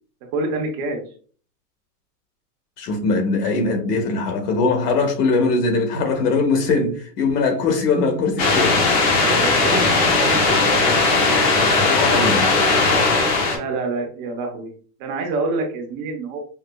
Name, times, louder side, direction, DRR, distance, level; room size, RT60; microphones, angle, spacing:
voice 1, 0.3-1.0 9.1-11.5 13.5-14.7 15.0-16.4, right 3 dB, 40° right, 0.9 m, -27 dB
voice 2, 2.8-8.8 11.6-12.5, left 3 dB, 90° left, 1.2 m, -21 dB
sound 1, 8.4-13.6, left 3 dB, 20° left, 0.4 m, -18 dB
5.3 x 2.1 x 2.2 m
supercardioid pair, 145°, 45 cm